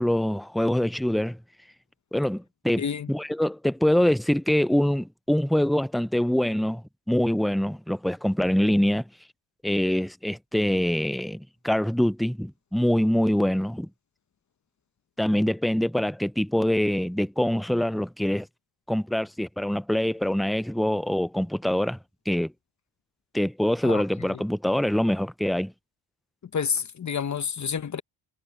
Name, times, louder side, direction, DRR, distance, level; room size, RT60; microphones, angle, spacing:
voice 1, 0.0-1.4 2.1-2.8 3.1-9.0 9.6-13.9 15.2-18.5 18.9-22.0 22.3-22.5 23.3-25.7, equal, ahead, 0.4 m, -24 dB
voice 2, 2.8-3.1 23.8-24.4 26.5-28.0, left 7 dB, 40° left, 0.9 m, -29 dB
cardioid pair, 85°, 47 cm